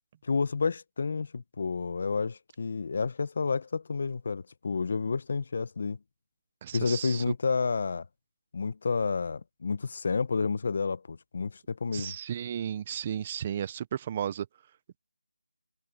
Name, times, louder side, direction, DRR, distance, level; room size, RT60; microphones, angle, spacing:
voice 1, 0.2-6.0 6.7-8.0 8.5-12.1, left 4 dB, 35° left, 0.7 m, -30 dB
voice 2, 6.6-7.2 11.9-14.5, right 9 dB, 15° right, 0.4 m, -34 dB
figure-of-eight pair, 175°, 0 cm